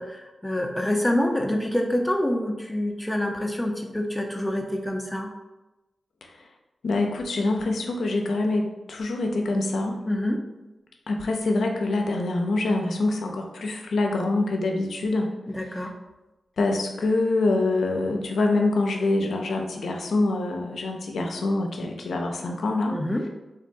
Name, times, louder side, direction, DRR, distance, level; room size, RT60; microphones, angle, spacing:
voice 1, 0.0-5.3 10.1-10.4 15.5-15.9 22.9-23.2, left 1 dB, 10° left, 2 dB, 0.5 m, -26 dB
voice 2, 6.8-10.0 11.1-15.3 15.6-15.9 16.6-23.0, left 2 dB, 80° left, 2 dB, 0.4 m, -25 dB
3.6 x 2.2 x 2.6 m, 1.0 s
cardioid pair, 50°, 0 cm